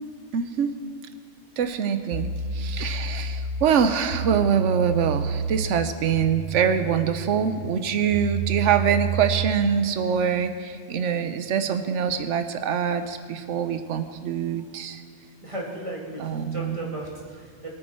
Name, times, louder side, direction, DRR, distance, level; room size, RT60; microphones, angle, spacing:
voice 1, 0.3-0.7 1.6-15.0 16.2-16.9, right 7 dB, 85° right, 9 dB, 1.1 m, -24 dB
sound 1, 1.6-1.7 2.1-9.6, right 4 dB, 60° right, 1.1 m, -30 dB
voice 2, 15.4-16.2 16.5-17.7, right 1 dB, 25° right, -3 dB, 2.5 m, -35 dB
22.5 x 8.9 x 4.4 m, 2.1 s
omnidirectional pair, 1.2 m